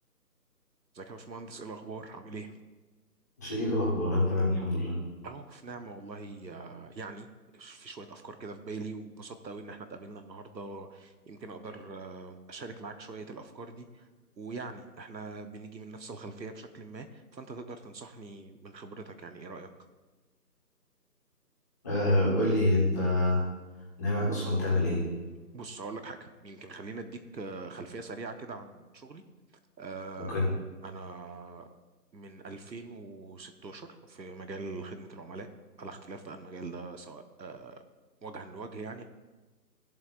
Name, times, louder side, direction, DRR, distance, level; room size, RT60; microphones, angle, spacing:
voice 1, 0.9-2.5 5.2-7.3 7.5-13.9 14.4-17.1 17.3-19.7 25.5-29.2 29.8-30.5 30.8-31.7 32.1-35.5 35.8-37.7 38.2-39.0, right 3 dB, 90° right, 8 dB, 1.2 m, -42 dB
voice 2, 3.4-4.9 21.8-23.4 24.0-25.0 30.3-30.4, left 1 dB, 10° left, -9 dB, 1.5 m, -26 dB
15.5 x 7.6 x 2.5 m, 1.2 s
figure-of-eight pair, 170°, 50 cm